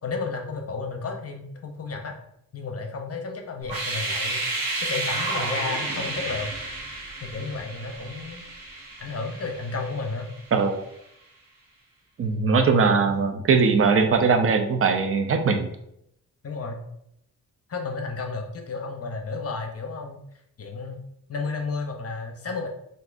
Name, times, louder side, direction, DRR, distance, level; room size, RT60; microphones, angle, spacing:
voice 1, 0.0-2.2 2.5-4.4 4.8-6.5 7.2-8.4 9.0-10.3 12.9-13.0 16.4-16.8 17.7-20.2 20.6-21.0 21.3-22.7, left 4 dB, 45° left, 4 dB, 0.7 m, -32 dB
sound 1, 3.6-10.5, right 2 dB, 80° right, 0.9 m, -31 dB
voice 2, 10.5-10.8 12.2-15.7, right 5 dB, 40° right, 6 dB, 0.6 m, -20 dB
3.6 x 2.6 x 2.5 m, 0.76 s
cardioid pair, 70°, 35 cm